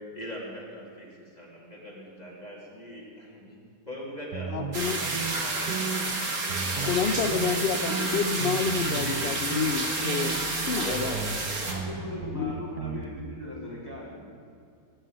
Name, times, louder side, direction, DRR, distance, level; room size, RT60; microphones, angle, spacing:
voice 1, 0.1-3.6 3.9-5.7 6.4-7.4 9.0-9.3 10.7-11.2, equal, 25° left, -4 dB, 2.8 m, -41 dB
sound 1, 4.3-6.2 6.4-7.1 7.3-9.2 9.5-9.7 10.0-13.0, right 6 dB, 85° right, 1.7 m, -35 dB
voice 2, 4.5-5.0 6.8-11.2 12.3-12.5, left 6 dB, 65° left, 7 dB, 0.6 m, -29 dB
sound 2, 4.7-11.7, right 2 dB, 60° right, 2.5 m, -30 dB
voice 3, 11.7-14.3, left 2 dB, 15° right, -6 dB, 4.2 m, -39 dB
18.5 x 6.3 x 9.4 m, 2.4 s
omnidirectional pair, 1.7 m